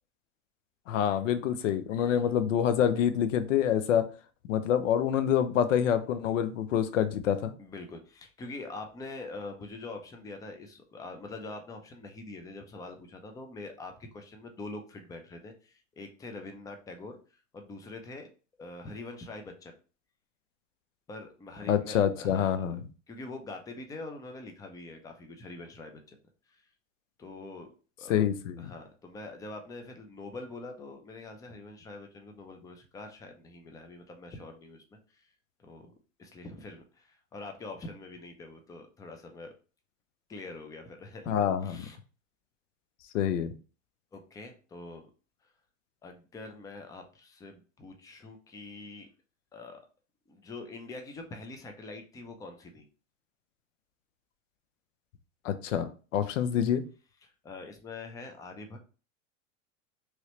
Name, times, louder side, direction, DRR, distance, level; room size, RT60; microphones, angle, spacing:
voice 1, 0.9-4.1 4.5-7.5 21.7-22.8 28.1-28.7 41.3-41.9 43.1-43.5 55.4-56.8, left 9 dB, 85° left, 10 dB, 0.6 m, -27 dB
voice 2, 7.6-18.3 18.6-19.8 21.1-22.6 23.1-26.2 26.5-26.7 27.2-27.7 28.0-28.2 28.6-35.3 35.6-35.9 36.2-39.5 40.3-41.4 41.6-42.0 44.1-45.1 46.0-49.1 49.5-49.8 50.3-52.9 57.2-58.8, left 2 dB, 10° left, 5 dB, 0.4 m, -44 dB
3.1 x 2.8 x 3.0 m, 0.36 s
supercardioid pair, 120°, 37 cm